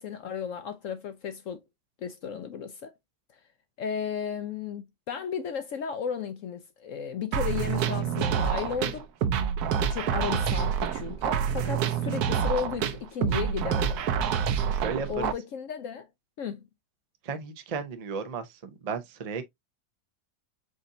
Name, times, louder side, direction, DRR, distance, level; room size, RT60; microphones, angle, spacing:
voice 1, 0.0-1.6 2.0-2.9 3.8-9.1 9.7-14.0 15.1-16.1 16.4-16.6, left 7 dB, 65° left, 0.8 m, -34 dB
sound 1, 7.3-15.3, right 8 dB, 70° right, 1.1 m, -27 dB
voice 2, 14.7-15.3 17.2-19.4, right 5 dB, 55° right, 0.4 m, -34 dB
5.1 x 4.0 x 2.6 m
omnidirectional pair, 1.8 m